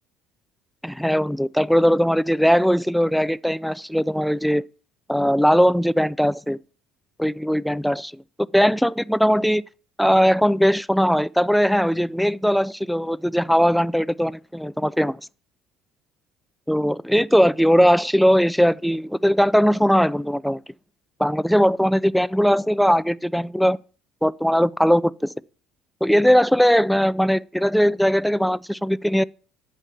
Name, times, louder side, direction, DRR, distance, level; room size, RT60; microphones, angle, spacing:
voice 1, 0.8-4.6 5.1-6.6 7.2-8.2 8.5-9.6 10.0-15.2 16.7-20.6 21.2-23.8 24.2-25.1 26.0-29.2, equal, ahead, 0.3 m, -19 dB
7.1 x 5.4 x 7.0 m
hypercardioid pair, 60°, 0 cm